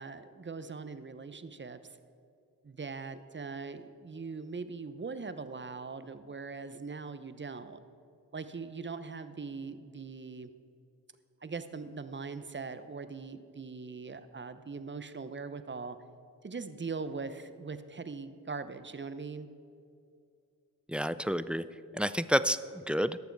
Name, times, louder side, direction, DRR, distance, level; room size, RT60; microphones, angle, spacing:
voice 1, 0.0-2.0 2.6-7.8 8.3-10.5 11.4-16.0 16.4-19.5, right 4 dB, 25° right, 11 dB, 0.8 m, -41 dB
voice 2, 20.9-21.6 21.9-23.2, equal, 5° right, 14 dB, 0.3 m, -29 dB
17.0 x 6.9 x 4.7 m, 2.4 s
supercardioid pair, 45°, 42 cm